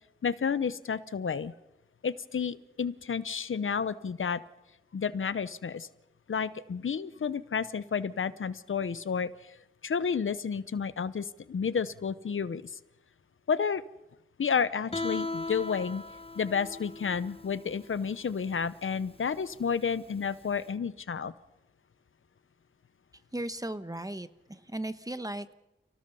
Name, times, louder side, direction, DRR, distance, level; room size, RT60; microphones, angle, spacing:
voice 1, 0.2-1.5 2.0-4.4 4.9-5.9 6.3-9.6 9.8-12.7 13.5-13.8 14.4-16.0 16.4-21.3, left 6 dB, 85° left, 15 dB, 0.8 m, -31 dB
Guitar, 14.9-20.6, left 2 dB, 30° left, 1.0 m, -39 dB
voice 2, 23.3-25.5, right 1 dB, 20° right, 11 dB, 1.1 m, -36 dB
30.0 x 18.0 x 5.5 m, 0.91 s
wide cardioid pair, 65°, 20 cm